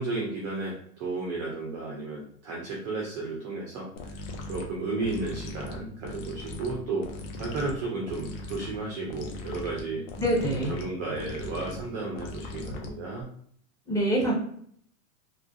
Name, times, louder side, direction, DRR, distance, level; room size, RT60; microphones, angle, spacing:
voice 1, 0.0-3.9 4.5-7.1 7.4-10.0 10.6-13.3, right 3 dB, 25° right, -2 dB, 0.3 m, -33 dB
sound 1, 4.0-13.2, left 2 dB, 60° left, 0.8 m, -40 dB
voice 2, 10.2-10.7 13.9-14.3, right 1 dB, 5° left, -5 dB, 0.8 m, -25 dB
2.9 x 2.3 x 2.6 m, 0.63 s
hypercardioid pair, 135°, 43 cm